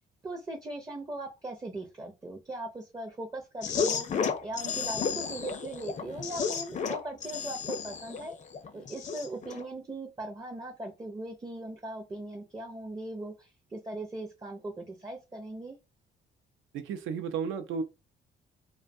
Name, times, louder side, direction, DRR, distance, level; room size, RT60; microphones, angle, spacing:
voice 1, 0.2-8.3 8.7-15.8, right 2 dB, 20° right, 0.5 m, -39 dB
sound 1, 3.6-9.6, left 6 dB, 35° left, 0.4 m, -33 dB
voice 2, 16.7-17.8, right 6 dB, 90° right, 0.5 m, -33 dB
2.5 x 2.2 x 2.5 m
cardioid pair, 90°, 20 cm